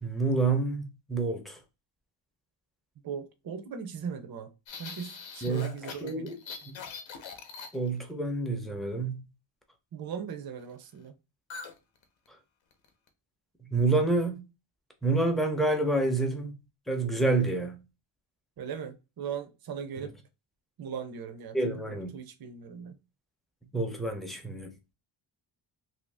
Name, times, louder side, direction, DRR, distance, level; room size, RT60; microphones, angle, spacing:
voice 1, 0.0-1.6 5.4-5.7 6.0-6.4 6.6-6.7 7.7-9.2 13.7-14.4 15.0-16.5 16.9-17.8 21.5-22.2 23.7-24.7, right 3 dB, ahead, 0.5 m, -28 dB
voice 2, 3.0-4.5 4.8-6.3 9.9-11.2 18.6-20.2 20.8-23.0, right 7 dB, 50° right, 0.6 m, -39 dB
sound 1, 4.7-8.1 11.5-11.8 12.0-12.3 12.7-13.1, left 5 dB, 65° left, 0.8 m, -42 dB
2.7 x 2.7 x 3.2 m
wide cardioid pair, 165°, 49 cm